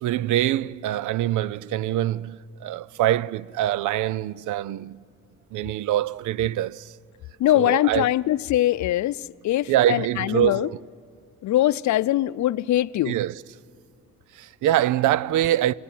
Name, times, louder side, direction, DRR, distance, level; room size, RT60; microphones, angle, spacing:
voice 1, 0.0-5.0 5.5-6.9 7.5-8.1 9.7-10.8 13.1-13.4 14.4-15.7, right 12 dB, 80° right, 0.6 m, -24 dB
voice 2, 7.4-10.7 11.4-13.2, left 14 dB, 70° left, 0.6 m, -22 dB
30.0 x 17.0 x 9.3 m
cardioid pair, 90°, 30 cm